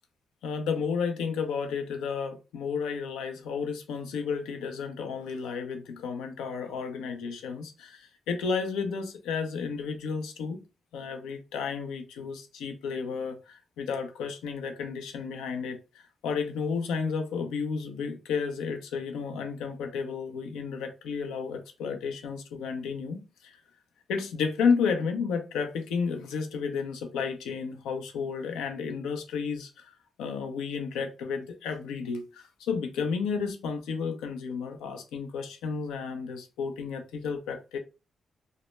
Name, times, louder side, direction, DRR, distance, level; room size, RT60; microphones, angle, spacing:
voice 1, 0.4-10.6 10.9-23.6 24.1-37.8, left 5 dB, 85° left, 5 dB, 0.4 m, -32 dB
2.1 x 2.0 x 3.1 m, 0.31 s
supercardioid pair, 45°, 0 cm